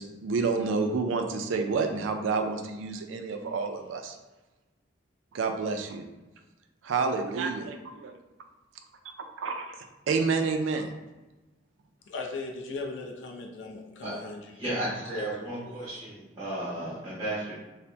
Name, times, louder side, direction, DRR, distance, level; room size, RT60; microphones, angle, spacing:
voice 1, 0.0-4.2 5.3-6.0 6.8-8.2 9.2-9.8 10.1-10.9, right 4 dB, 90° right, 6 dB, 0.4 m, -29 dB
voice 2, 12.1-14.6 15.1-15.3 15.5-15.7, left 3 dB, 70° left, 1 dB, 0.4 m, -38 dB
voice 3, 14.5-17.6, right 1 dB, 15° right, -11 dB, 0.9 m, -34 dB
2.7 x 2.0 x 3.3 m, 1.1 s
head